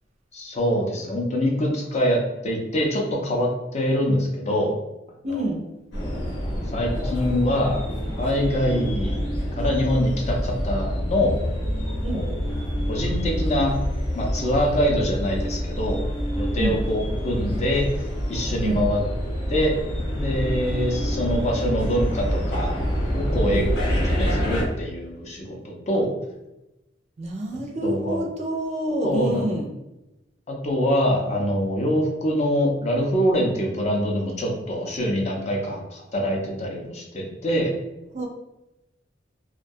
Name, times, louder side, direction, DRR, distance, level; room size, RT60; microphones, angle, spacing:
voice 1, 0.3-4.7 5.2-5.5 6.7-7.8 8.2-9.2 9.6-11.4 12.1-12.3 12.9-13.7 14.1-16.0 16.4-19.0 19.5-19.7 20.1-22.7 23.1-23.7 24.1-26.1 27.8-28.2 29.0-29.4 30.5-37.7, equal, 40° left, -1 dB, 0.5 m, -24 dB
voice 2, 5.2-5.6 12.0-12.2 16.6-16.8 18.6-18.8 23.5-23.7 27.2-29.7 38.1-38.3, right 1 dB, 40° right, 0 dB, 0.4 m, -27 dB
sound 1, 5.9-24.6, equal, 80° left, 1.0 m, -27 dB
2.2 x 2.2 x 2.6 m, 0.95 s
head